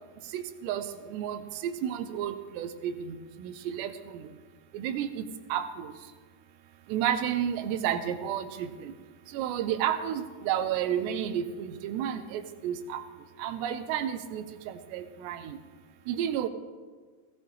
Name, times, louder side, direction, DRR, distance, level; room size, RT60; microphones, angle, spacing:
voice 1, 0.3-4.2 4.7-5.9 6.9-8.9 9.3-13.0 13.4-15.6 16.1-16.5, right 9 dB, 80° right, 10 dB, 2.6 m, -32 dB
18.5 x 17.5 x 3.3 m, 1.5 s
omnidirectional pair, 5.4 m